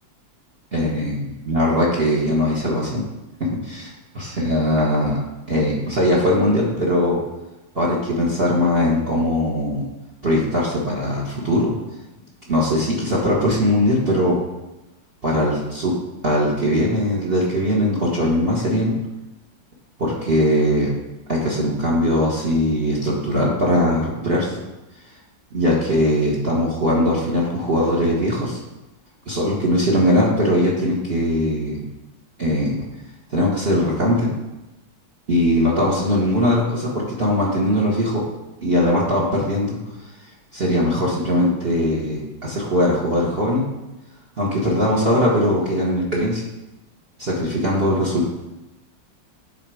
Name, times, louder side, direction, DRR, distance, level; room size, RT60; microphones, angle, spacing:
voice 1, 0.7-3.0 3.6-5.2 5.5-7.2 7.7-9.8 10.2-11.7 12.5-14.4 15.2-15.9 16.2-18.9 20.0-20.9 21.3-24.6 25.5-28.6 29.3-31.8 32.4-32.8 33.3-34.3 35.3-38.2 38.6-39.8 40.5-43.6 44.4-46.4 47.2-48.3, equal, 35° right, -3 dB, 1.2 m, -20 dB
10.0 x 3.8 x 4.8 m, 1.0 s
omnidirectional pair, 2.1 m